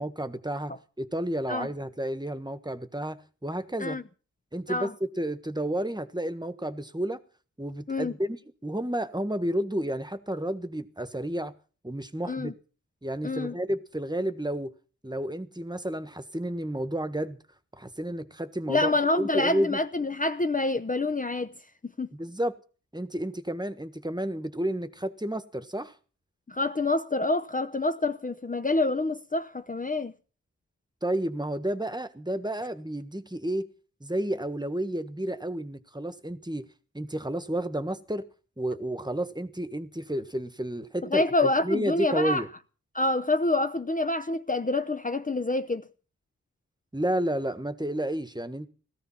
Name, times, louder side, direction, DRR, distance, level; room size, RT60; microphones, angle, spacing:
voice 1, 0.0-4.0 4.5-7.2 7.6-8.4 8.6-11.5 11.8-12.5 13.0-14.7 15.0-17.4 17.8-18.9 19.2-19.8 22.1-22.6 22.9-25.9 31.0-33.7 34.0-36.7 36.9-38.3 38.6-41.2 41.6-42.5 46.9-48.7, right 1 dB, 15° right, 1.5 m, -31 dB
voice 2, 13.2-13.6 18.7-21.5 22.0-22.1 26.5-30.1 41.1-42.4 42.9-45.9, left 2 dB, 25° left, 0.8 m, -27 dB
17.5 x 14.5 x 5.7 m
wide cardioid pair, 75°, 31 cm